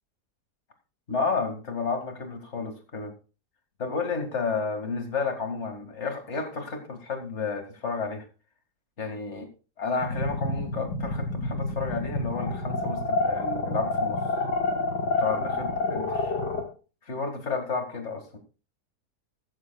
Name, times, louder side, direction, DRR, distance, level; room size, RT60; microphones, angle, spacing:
voice 1, 1.1-3.1 3.8-8.3 9.0-9.5 9.8-14.2 15.2-16.4 17.0-18.4, left 4 dB, 45° left, 5 dB, 2.3 m, -31 dB
sound 1, 10.0-16.6, left 2 dB, 85° left, 2.9 m, -28 dB
15.5 x 13.5 x 2.3 m, 0.34 s
omnidirectional pair, 1.7 m